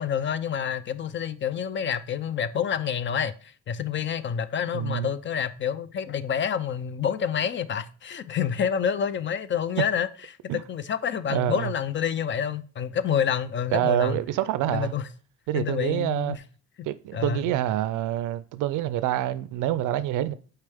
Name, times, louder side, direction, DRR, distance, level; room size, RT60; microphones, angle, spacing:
voice 1, 0.0-10.1 10.7-14.2 14.7-15.1 15.5-16.4 17.1-17.5, left 8 dB, 40° left, 0.4 m, -28 dB
voice 2, 4.7-5.1 10.5-10.6 11.3-11.7 13.7-14.9 15.5-16.4 16.8-20.3, right 12 dB, 90° right, 0.5 m, -26 dB
6.6 x 4.5 x 3.4 m
cardioid pair, 90°, 30 cm